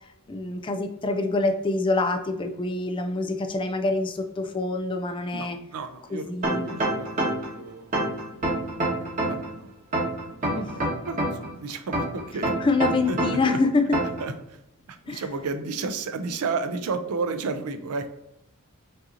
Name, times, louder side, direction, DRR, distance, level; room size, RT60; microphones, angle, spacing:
voice 1, 0.3-5.6 6.1-6.8 10.6-10.7 12.6-13.9 15.1-15.2, left 3 dB, 20° left, 6 dB, 0.3 m, -26 dB
voice 2, 5.3-8.3 8.7-9.7 10.3-12.5 13.1-13.6 14.2-14.6 14.9-18.1, right 4 dB, 80° right, 9 dB, 0.5 m, -33 dB
sound 1, 6.4-7.5 7.9-9.5 9.9-11.5 11.9-13.5 13.9-14.2, right 1 dB, 35° right, 1.1 m, -26 dB
5.4 x 2.7 x 2.5 m, 0.84 s
head